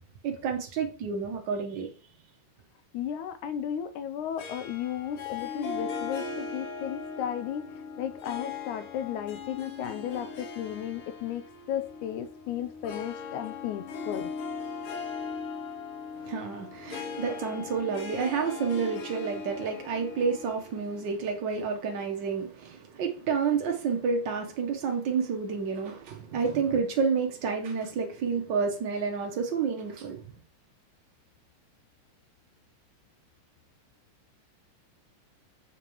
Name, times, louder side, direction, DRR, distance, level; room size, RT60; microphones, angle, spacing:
voice 1, 0.2-1.9 16.2-30.3, right 5 dB, 80° right, 1.0 m, -30 dB
voice 2, 2.9-7.7 8.0-14.3, left 10 dB, 90° left, 2.1 m, -34 dB
Harp, 4.4-21.1, left 5 dB, 65° left, 1.4 m, -39 dB
6.8 x 5.9 x 3.0 m
omnidirectional pair, 3.4 m